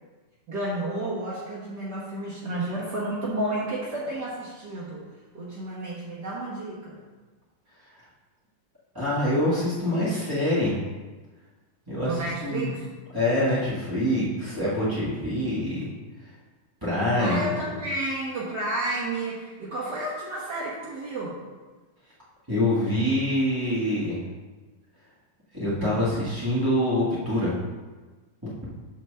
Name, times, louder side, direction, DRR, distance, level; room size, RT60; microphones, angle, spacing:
voice 1, 0.5-5.0 5.3-7.0 12.0-12.9 17.2-21.4, right 1 dB, 65° right, -6 dB, 1.0 m, -31 dB
voice 2, 8.9-10.7 11.9-12.8 13.1-15.9 16.8-17.8 22.5-24.2 25.5-27.5 28.4-28.5, left 1 dB, 20° right, -10 dB, 0.6 m, -25 dB
5.4 x 5.0 x 6.6 m, 1.3 s
omnidirectional pair, 3.7 m